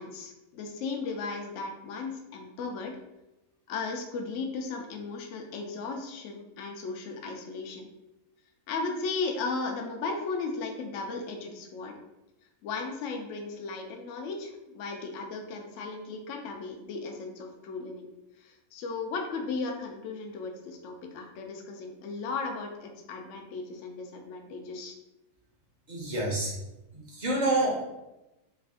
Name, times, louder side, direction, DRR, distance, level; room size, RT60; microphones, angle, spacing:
voice 1, 0.0-3.0 3.7-7.9 8.7-12.0 12.6-18.1 18.4-25.0, left 4 dB, 65° left, 2 dB, 0.8 m, -36 dB
voice 2, 25.9-26.5 26.9-27.8, right 2 dB, 35° right, -3 dB, 0.8 m, -28 dB
3.3 x 2.4 x 3.6 m, 0.96 s
omnidirectional pair, 1.6 m